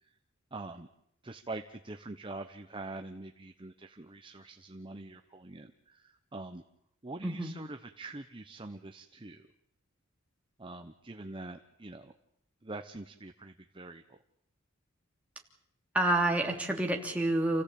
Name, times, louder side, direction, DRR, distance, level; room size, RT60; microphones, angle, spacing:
voice 1, 0.5-0.9 1.2-6.6 7.0-9.4 10.6-12.1 12.6-14.0, right 2 dB, 25° right, 6 dB, 1.0 m, -44 dB
voice 2, 7.2-7.5 15.9-17.6, right 1 dB, 5° right, 0 dB, 3.0 m, -28 dB
29.0 x 16.0 x 8.5 m, 0.76 s
head